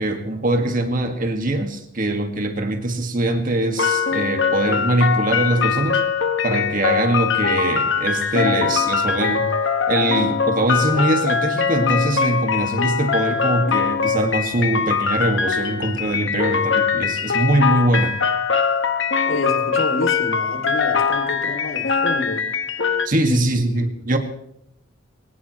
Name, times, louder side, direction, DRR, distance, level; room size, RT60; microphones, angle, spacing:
voice 1, 0.0-6.0 6.4-9.5 9.9-18.2 23.1-24.2, right 1 dB, 40° right, 4 dB, 2.0 m, -22 dB
sound 1, 3.8-23.1, left 6 dB, 60° left, 1.2 m, -22 dB
voice 2, 19.2-22.4 23.2-23.9, left 2 dB, 75° left, 4 dB, 2.8 m, -28 dB
23.0 x 18.0 x 3.2 m, 0.76 s
head